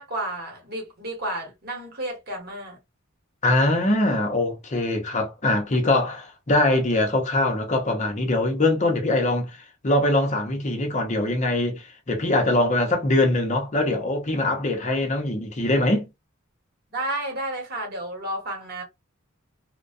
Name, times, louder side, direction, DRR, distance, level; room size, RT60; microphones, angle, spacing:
voice 1, 0.0-2.8 5.7-5.8 14.7-15.3 16.9-18.8, right 1 dB, 50° right, 1.2 m, -32 dB
voice 2, 3.4-16.1, left 2 dB, 35° left, 0.7 m, -23 dB
2.2 x 2.2 x 2.5 m
head